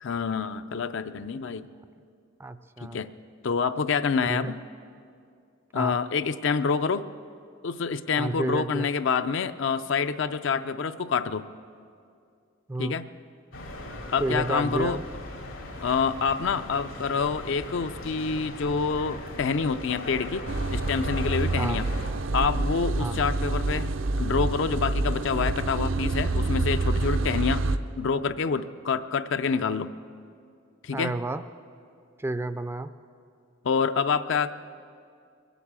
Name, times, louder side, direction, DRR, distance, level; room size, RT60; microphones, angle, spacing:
voice 1, 0.0-1.7 2.8-3.1 3.4-4.6 5.7-7.1 7.6-11.5 12.8-13.1 14.1-15.0 15.8-20.5 20.7-21.9 22.3-23.9 24.2-27.6 28.0-29.9 30.8-31.2 33.6-34.5, left 5 dB, 65° left, 11 dB, 0.5 m, -27 dB
voice 2, 2.4-3.0 4.2-4.5 5.7-5.9 8.2-8.9 12.7-13.0 14.2-15.0 21.6-21.8 23.0-23.2 30.9-31.4 32.2-32.9, right 2 dB, 10° right, 11 dB, 0.3 m, -30 dB
sound 1, 13.5-22.1, left 1 dB, 90° left, 2.6 m, -39 dB
sound 2, 20.5-27.8, right 2 dB, 70° right, 0.6 m, -27 dB
22.0 x 8.3 x 7.4 m, 2.3 s
head